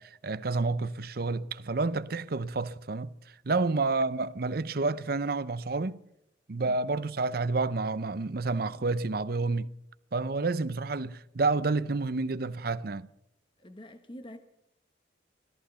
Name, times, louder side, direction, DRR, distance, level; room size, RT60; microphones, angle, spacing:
voice 1, 0.0-3.1 3.5-6.0 6.5-9.7 10.1-13.1, right 3 dB, 55° right, 0.7 m, -29 dB
voice 2, 13.6-14.4, equal, 25° left, 1.1 m, -45 dB
17.5 x 14.0 x 5.7 m
head